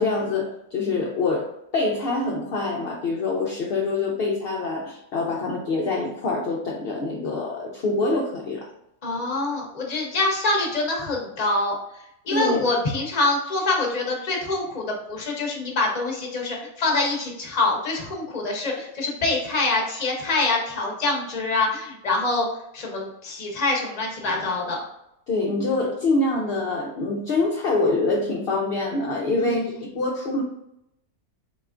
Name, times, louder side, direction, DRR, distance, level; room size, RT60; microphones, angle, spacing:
voice 1, 0.0-8.7 12.3-12.6 25.3-30.4, left 3 dB, 60° left, -2 dB, 0.6 m, -25 dB
voice 2, 9.0-22.5 22.7-24.8 29.4-29.8, left 2 dB, 35° left, 0 dB, 0.8 m, -25 dB
4.2 x 3.3 x 2.4 m, 0.83 s
omnidirectional pair, 1.5 m